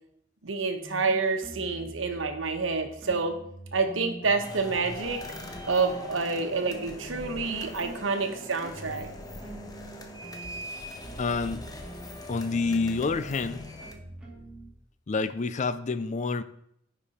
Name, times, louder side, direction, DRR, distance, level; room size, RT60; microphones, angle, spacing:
voice 1, 0.4-3.3 3.7-5.2 5.6-9.1, right 4 dB, 80° right, 6 dB, 1.1 m, -28 dB
sound 1, 0.8-4.9 5.2-14.7, right 1 dB, 5° right, 2.2 m, -45 dB
sound 2, 4.4-13.9, left 1 dB, 20° left, 0.9 m, -42 dB
voice 2, 11.2-11.7 12.3-13.6 15.1-16.4, left 4 dB, 40° left, 13 dB, 0.4 m, -28 dB
10.0 x 5.2 x 4.2 m, 0.73 s
head